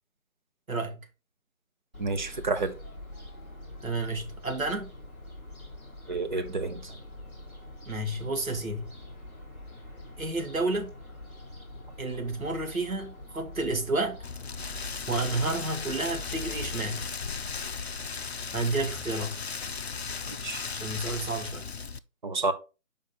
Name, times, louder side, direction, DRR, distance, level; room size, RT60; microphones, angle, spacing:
voice 1, 0.7-1.1 3.8-4.9 7.9-8.9 10.2-10.9 12.0-14.2 15.1-17.1 18.5-19.4 20.7-21.7, right 2 dB, 80° right, 2.2 m, -31 dB
Fowl, 1.9-17.1, left 1 dB, 10° right, 0.9 m, -44 dB
voice 2, 2.0-2.8 6.1-7.0 20.4-20.6 22.2-22.5, right 3 dB, 35° right, 0.9 m, -30 dB
Rain, 14.2-22.0, left 5 dB, 50° left, 0.5 m, -36 dB
7.1 x 5.1 x 4.1 m
figure-of-eight pair, 155°, 41 cm